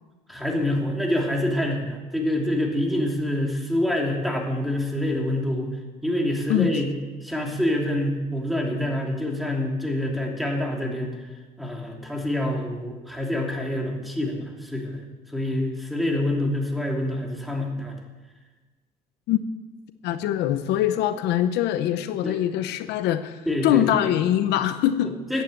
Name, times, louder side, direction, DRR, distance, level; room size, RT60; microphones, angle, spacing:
voice 1, 0.3-5.7 6.0-6.9 7.2-11.1 11.6-15.0 15.3-18.0 22.2-22.4 23.5-23.8 25.0-25.4, left 1 dB, ahead, 0 dB, 3.1 m, -26 dB
voice 2, 20.0-25.4, left 11 dB, 85° left, 10 dB, 0.9 m, -23 dB
15.0 x 9.3 x 7.8 m, 1.3 s
cardioid pair, 110°, 17 cm